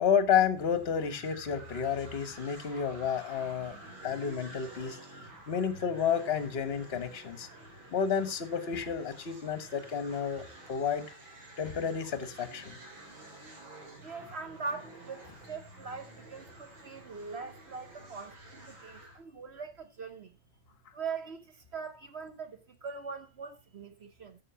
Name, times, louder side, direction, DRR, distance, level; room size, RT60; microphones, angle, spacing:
voice 1, 0.0-3.8 4.0-5.0 5.5-7.5 7.9-10.4 10.7-11.1 11.6-12.8, left 7 dB, 40° left, 1.1 m, -30 dB
sound 1, 0.6-19.2, right 1 dB, 75° right, 4.1 m, -50 dB
voice 2, 14.0-20.4 20.9-24.4, right 5 dB, 50° right, 0.8 m, -42 dB
9.7 x 7.1 x 5.6 m
omnidirectional pair, 2.2 m